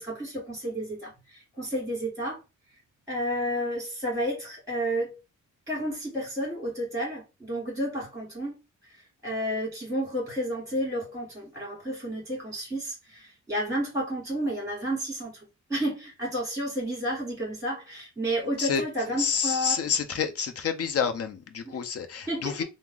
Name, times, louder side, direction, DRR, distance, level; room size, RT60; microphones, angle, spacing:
voice 1, 0.0-2.4 3.1-5.2 5.7-8.6 8.9-19.8 21.7-21.8 22.3-22.6, equal, 10° right, 2.2 m, -31 dB
voice 2, 19.2-22.6, left 6 dB, 50° left, 0.7 m, -28 dB
3.5 x 2.0 x 3.8 m
cardioid pair, 90°, 30 cm